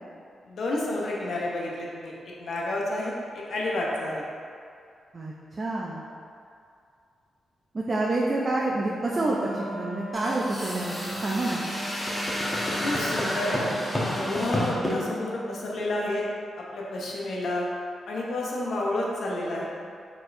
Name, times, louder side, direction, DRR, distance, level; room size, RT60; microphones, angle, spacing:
voice 1, 0.5-2.1 2.4-3.1 3.5-4.2 12.7-13.6 14.1-16.2 16.6-17.7 18.1-19.7, left 1 dB, 70° left, -4 dB, 0.8 m, -30 dB
voice 2, 5.1-6.0 7.7-11.6, right 2 dB, 35° right, -4 dB, 0.4 m, -28 dB
Wind instrument woodwind instrument, 9.0-15.7, right 1 dB, 65° right, 0.9 m, -38 dB
sound 1, 10.1-15.0, left 1 dB, 25° left, 0.9 m, -30 dB
4.4 x 4.2 x 2.6 m, 2.4 s
cardioid pair, 105°, 0 cm